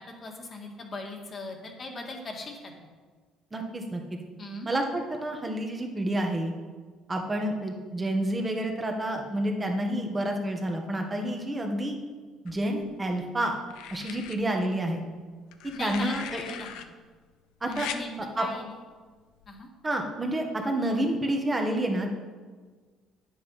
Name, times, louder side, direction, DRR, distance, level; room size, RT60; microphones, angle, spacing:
voice 1, 0.2-2.7 4.4-4.7 15.7-16.7 17.6-18.8 19.5-19.7, left 2 dB, 35° left, 2 dB, 2.0 m, -39 dB
voice 2, 3.5-4.0 4.7-6.5 7.1-12.0 12.4-13.5 13.9-15.0 15.8-16.4 17.6-17.9 18.4-18.5 19.8-22.1, right 1 dB, 20° right, 3 dB, 1.7 m, -29 dB
sound 1, 12.5-13.1 13.7-14.4 15.5-16.8 17.7-18.0 19.4-19.6, left 9 dB, 80° left, 0.7 m, -40 dB
9.8 x 7.9 x 5.6 m, 1.5 s
cardioid pair, 100°, 0 cm